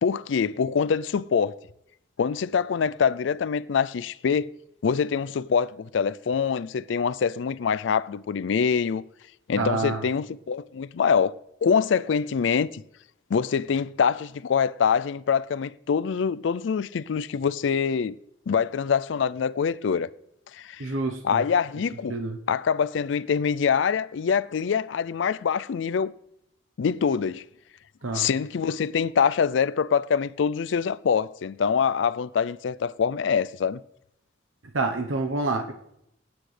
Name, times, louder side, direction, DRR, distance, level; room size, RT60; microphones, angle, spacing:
voice 1, 0.0-1.6 2.2-4.5 4.8-9.0 9.5-11.3 11.6-12.8 13.3-18.1 18.5-20.1 20.5-20.9 21.2-22.1 22.5-26.1 26.8-27.4 28.1-33.8, left 6 dB, 70° left, 0.4 m, -24 dB
voice 2, 9.6-10.0 20.8-21.4 22.1-22.4 28.0-28.3 34.7-35.7, right 3 dB, 90° right, 1.0 m, -27 dB
18.5 x 9.7 x 3.3 m
head